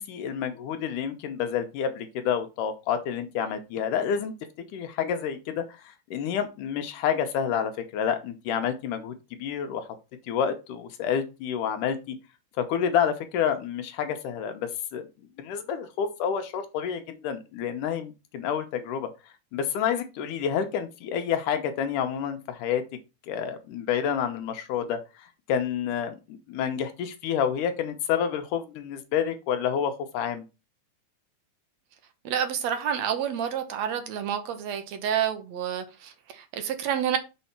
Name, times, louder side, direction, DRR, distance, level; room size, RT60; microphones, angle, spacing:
voice 1, 0.0-4.3 4.7-5.8 6.1-9.1 9.4-9.9 10.3-12.2 12.6-15.1 15.4-19.1 19.5-22.8 23.3-30.4, left 8 dB, 80° left, 2.4 m, -29 dB
voice 2, 32.2-37.2, right 9 dB, 65° right, 2.1 m, -29 dB
6.3 x 4.2 x 5.8 m
omnidirectional pair, 3.6 m